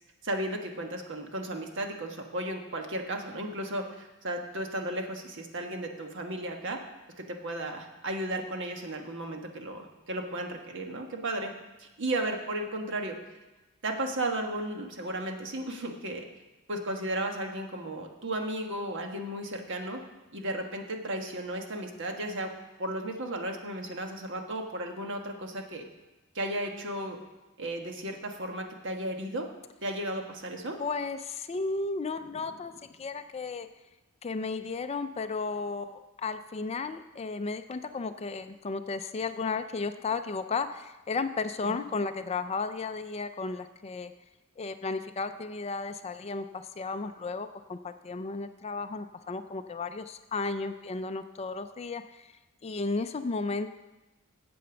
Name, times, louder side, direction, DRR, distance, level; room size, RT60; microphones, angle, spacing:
voice 1, 0.2-6.8 7.2-11.5 11.8-13.1 13.8-16.2 16.7-20.0 20.3-22.5 22.8-25.8 26.3-27.2 27.6-29.5 29.8-30.8 41.6-41.8, right 1 dB, 60° right, 3 dB, 1.4 m, -34 dB
voice 2, 30.8-33.7 34.2-44.1 44.6-52.3 52.6-53.7, left 4 dB, 30° left, 10 dB, 0.4 m, -34 dB
8.3 x 7.8 x 7.0 m, 1.1 s
head